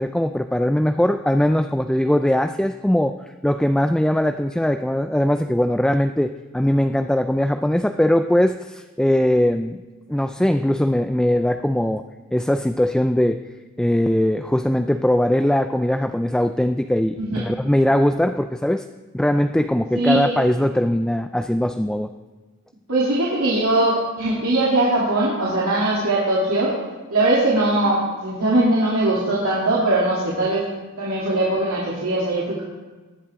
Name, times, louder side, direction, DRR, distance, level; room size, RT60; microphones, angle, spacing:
voice 1, 0.0-3.2 3.4-9.8 10.1-12.0 12.3-13.4 13.8-18.8 19.1-22.1, left 1 dB, 5° left, 7 dB, 0.3 m, -20 dB
voice 2, 19.9-20.4 22.9-26.7 27.1-30.6 31.0-32.6, right 2 dB, 80° right, -7 dB, 3.0 m, -20 dB
19.0 x 10.5 x 3.7 m, 1.3 s
head